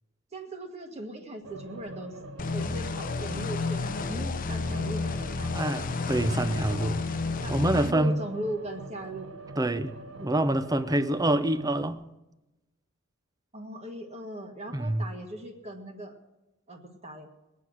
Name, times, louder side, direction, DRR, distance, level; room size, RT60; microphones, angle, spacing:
voice 1, 0.3-2.1 2.5-5.5 7.2-9.3 13.5-16.2 16.7-17.3, right 1 dB, 35° right, 1.7 m, -39 dB
sound 1, 1.4-4.3 4.6-11.9, right 2 dB, 75° right, 1.0 m, -44 dB
sound 2, 2.4-7.9, left 3 dB, 45° left, 0.6 m, -31 dB
voice 2, 5.5-7.0 7.5-8.2 9.6-12.0 14.7-15.1, right 1 dB, 20° right, 0.6 m, -26 dB
21.5 x 8.5 x 6.2 m
head